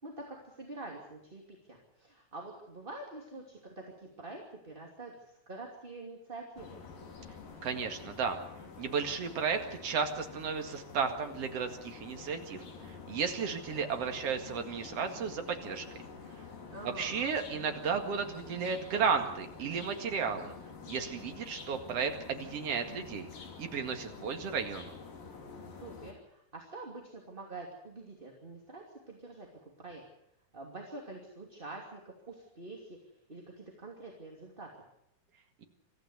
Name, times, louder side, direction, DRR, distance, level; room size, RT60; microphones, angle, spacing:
voice 1, 0.0-6.8 16.7-17.3 25.6-29.5 29.8-30.0 30.5-33.0 33.3-34.7, right 2 dB, 15° right, 0 dB, 2.5 m, -46 dB
sound 1, 6.6-26.1, left 5 dB, 75° left, 4.8 m, -48 dB
voice 2, 7.6-8.4 8.8-15.9 16.8-20.5 20.9-23.3 23.6-24.9, right 6 dB, 50° right, 5 dB, 2.7 m, -34 dB
24.5 x 14.5 x 8.2 m, 0.79 s
omnidirectional pair, 4.0 m